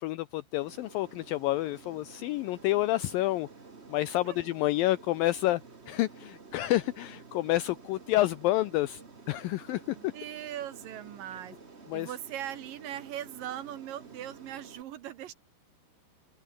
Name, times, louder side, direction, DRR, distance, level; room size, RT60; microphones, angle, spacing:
voice 1, 0.0-3.5 3.9-5.6 5.9-9.0 9.3-10.1 11.9-12.1, left 16 dB, 80° left, 2.0 m, -29 dB
Aircraft, 0.6-14.8, right 4 dB, 40° right, 0.9 m, -51 dB
voice 2, 9.8-11.6 11.9-15.3, right 11 dB, 65° right, 2.5 m, -40 dB
omnidirectional pair, 4.7 m